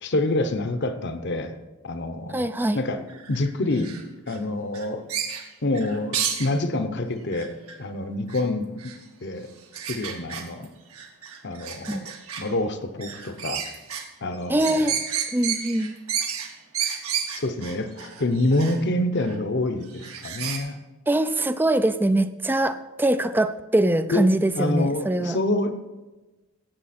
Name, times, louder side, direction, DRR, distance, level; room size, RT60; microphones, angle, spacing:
voice 1, 0.0-1.6 1.8-3.0 3.3-3.9 4.3-5.0 5.6-8.9 9.2-9.5 9.9-10.7 11.4-12.1 12.4-13.6 14.2-15.0 17.3-20.8 24.1-24.2 24.6-25.8, left 2 dB, 50° left, 9 dB, 0.9 m, -27 dB
voice 2, 2.3-2.8 11.9-12.1 14.5-15.0 15.3-15.9 21.1-25.4, right 1 dB, 10° right, 12 dB, 0.3 m, -23 dB
sound 1, 3.1-4.4 4.7-6.5 7.3-7.7 8.3-8.4 8.8-9.0 9.7-10.6 10.9-12.4 13.0-14.0 14.3-18.8 19.2-19.4 19.8-20.6, right 8 dB, 80° right, 1.7 m, -31 dB
17.0 x 7.4 x 4.3 m, 1.1 s
head